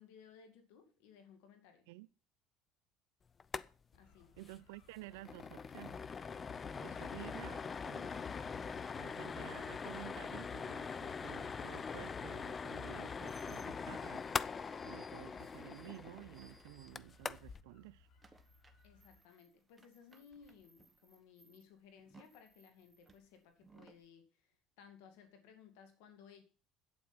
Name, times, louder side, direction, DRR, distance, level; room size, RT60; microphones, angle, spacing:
voice 1, 0.0-1.9 3.9-4.3 6.9-7.2 18.8-24.5 24.8-26.4, left 7 dB, 80° left, 2.2 m, -60 dB
sound 1, 3.4-3.7 3.9-4.0 4.4-4.6 4.9-17.6, left 5 dB, 30° left, 0.5 m, -42 dB
sound 2, 3.9-19.2, left 4 dB, 65° left, 4.7 m, -65 dB
voice 2, 4.4-6.0 6.8-8.2 9.0-14.3 14.8-18.1, right 19 dB, 85° right, 0.4 m, -52 dB
sound 3, 13.2-17.4 17.7-24.1, right 4 dB, 15° right, 1.3 m, -65 dB
8.9 x 8.4 x 6.0 m
supercardioid pair, 105°, 0 cm